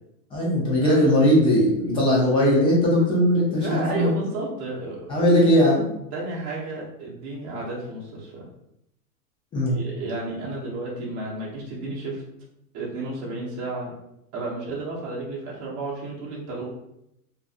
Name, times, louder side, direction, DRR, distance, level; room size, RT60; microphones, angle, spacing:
voice 1, 0.3-4.1 5.1-5.9 9.5-9.8, equal, 15° left, -5 dB, 0.4 m, -19 dB
voice 2, 3.6-5.2 6.1-8.5 9.7-12.2 12.7-13.9 14.3-16.7, right 2 dB, 35° right, -5 dB, 0.9 m, -32 dB
2.5 x 2.5 x 2.4 m, 0.80 s
supercardioid pair, 135°, 44 cm